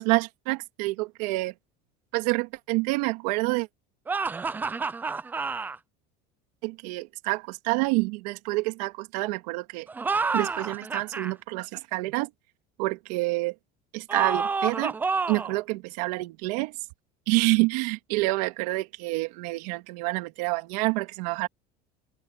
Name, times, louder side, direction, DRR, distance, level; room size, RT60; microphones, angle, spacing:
voice 1, 0.0-1.5 2.1-3.7 6.6-9.9 10.3-12.3 12.8-13.5 13.9-15.0 15.3-16.8 17.3-21.5, right 23 dB, 75° right, 2.5 m, -27 dB
sound 1, 4.1-5.8 9.9-11.3 14.1-15.6, right 4 dB, 10° right, 0.4 m, -29 dB
open air
cardioid pair, 170°, 21 cm